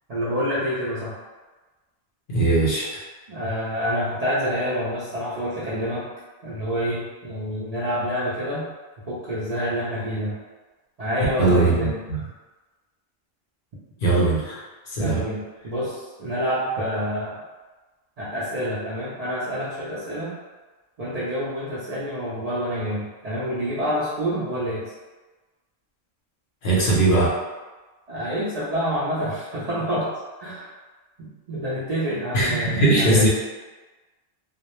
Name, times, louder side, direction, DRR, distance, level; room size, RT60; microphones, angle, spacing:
voice 1, 0.1-1.2 3.3-6.1 6.4-8.7 9.1-10.4 11.0-12.0 15.0-17.4 18.2-20.3 21.0-24.9 28.1-30.1 30.4-30.7 31.2-33.3, equal, 55° right, -9 dB, 0.4 m, -27 dB
voice 2, 2.3-2.9 11.4-12.2 14.0-15.2 26.6-27.3 32.3-33.3, right 2 dB, 60° left, -6 dB, 0.7 m, -20 dB
2.1 x 2.1 x 2.9 m, 1.3 s
omnidirectional pair, 1.1 m